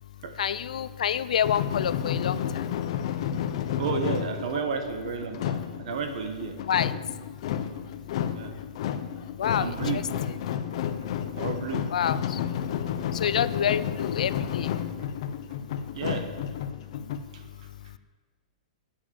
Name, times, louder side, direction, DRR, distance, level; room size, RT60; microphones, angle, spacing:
voice 1, 0.4-2.4 6.7-6.9 9.4-10.0 11.9-12.4 13.2-14.7, left 9 dB, 80° left, 16 dB, 0.6 m, -27 dB
sound 1, 1.4-17.2, left 9 dB, 50° left, 0.8 m, -31 dB
voice 2, 3.8-6.6 8.3-8.5 9.6-10.0 11.3-11.9 15.9-16.3 17.3-17.4, right 6 dB, 60° right, 7 dB, 1.6 m, -32 dB
9.9 x 7.1 x 8.4 m, 1.5 s
hypercardioid pair, 160°, 4 cm